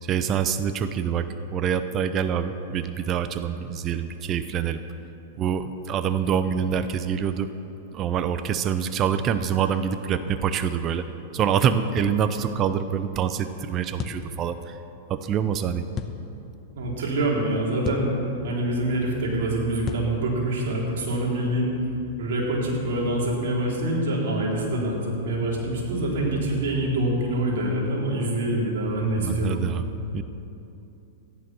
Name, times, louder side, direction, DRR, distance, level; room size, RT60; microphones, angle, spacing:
voice 1, 0.0-4.8 5.4-7.5 7.9-11.0 11.3-14.8 15.1-15.8 29.2-29.9 30.1-30.2, right 8 dB, 35° right, 11 dB, 0.6 m, -25 dB
sound 1, 12.0-12.2 14.0-14.3 15.9-16.2 17.8-18.1 19.9-20.1, left 9 dB, 30° left, 1.0 m, -32 dB
voice 2, 16.8-18.1 18.4-21.7 22.2-29.7, right 1 dB, 65° right, -3 dB, 3.9 m, -25 dB
14.0 x 10.0 x 6.2 m, 2.9 s
hypercardioid pair, 120°, 0 cm